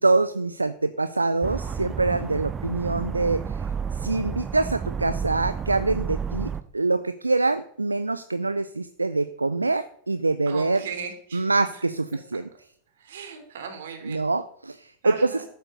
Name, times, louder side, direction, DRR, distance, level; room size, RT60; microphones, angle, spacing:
voice 1, 0.0-3.6 3.9-10.8 11.3-12.5 14.0-15.4, right 3 dB, 80° right, 13 dB, 0.5 m, -25 dB
sound 1, 1.4-6.6, right 6 dB, 20° right, 0.8 m, -31 dB
voice 2, 10.5-11.8 13.0-14.2 15.0-15.5, right 6 dB, 60° right, 5 dB, 3.2 m, -37 dB
13.5 x 7.9 x 6.7 m, 0.64 s
figure-of-eight pair, 90°, 0 cm